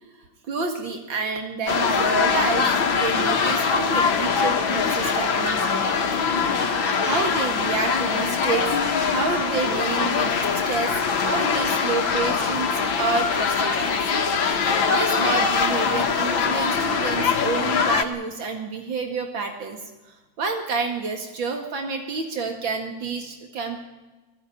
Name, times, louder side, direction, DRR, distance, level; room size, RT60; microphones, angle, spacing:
voice 1, 0.5-6.0 6.8-8.7 9.1-12.7 13.0-14.0 14.6-19.8 20.4-23.8, right 4 dB, 75° right, 4 dB, 2.8 m, -29 dB
sound 1, 1.7-18.0, left 5 dB, 90° left, 2.3 m, -22 dB
20.5 x 16.5 x 10.0 m, 1.2 s
omnidirectional pair, 2.1 m